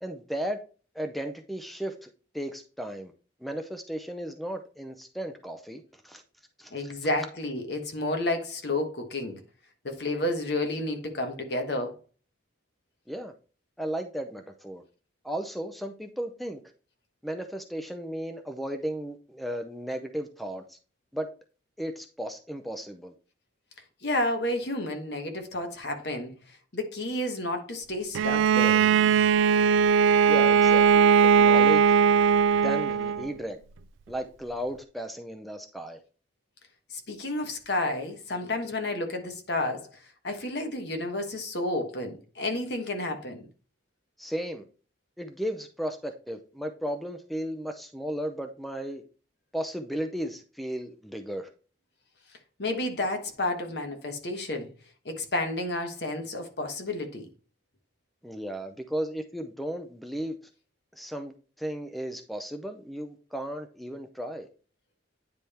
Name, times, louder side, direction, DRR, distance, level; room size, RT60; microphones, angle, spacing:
voice 1, 0.0-0.6 0.9-2.1 2.3-3.1 3.4-6.2 6.6-6.9 13.1-13.3 13.8-14.8 15.2-16.6 17.2-20.8 21.1-21.3 21.8-23.1 30.3-32.0 32.5-33.6 34.1-36.0 44.2-44.6 45.2-49.0 49.5-51.5 58.2-60.4 61.0-64.5, equal, ahead, 0.5 m, -35 dB
voice 2, 6.7-9.4 9.8-12.0 24.0-26.3 26.7-29.1 37.1-39.9 40.2-43.5 52.6-54.7 55.0-57.3, left 1 dB, 60° left, 1.2 m, -31 dB
Bowed string instrument, 28.1-33.3, right 7 dB, 80° right, 0.3 m, -20 dB
9.3 x 3.4 x 4.2 m
head